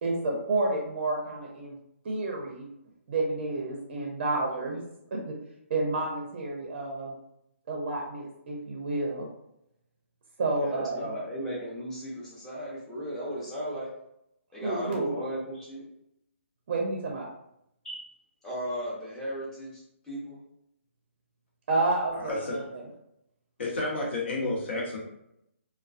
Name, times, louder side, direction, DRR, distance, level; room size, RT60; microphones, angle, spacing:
voice 1, 0.0-1.8 2.0-2.7 3.1-4.8 5.1-5.3 5.7-7.1 7.7-9.3 10.4-11.1 14.6-15.1 16.7-17.3 21.7-22.8, right 2 dB, 45° right, 0 dB, 0.5 m, -30 dB
voice 2, 10.6-13.9 14.5-15.8 17.8-18.1 18.4-20.4, equal, 5° left, -7 dB, 0.7 m, -36 dB
voice 3, 22.1-22.6 23.6-25.0, left 2 dB, 55° left, -3 dB, 1.0 m, -31 dB
2.3 x 2.3 x 2.4 m, 0.79 s
hypercardioid pair, 150°, 7 cm